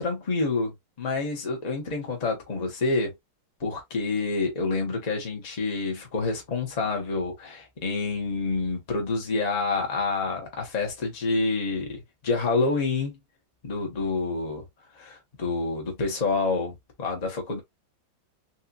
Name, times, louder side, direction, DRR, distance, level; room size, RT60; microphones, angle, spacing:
voice 1, 0.0-3.1 3.6-13.2 13.6-14.6 14.9-17.6, left 3 dB, 25° left, 1.0 m, -28 dB
4.4 x 2.6 x 2.4 m
omnidirectional pair, 2.2 m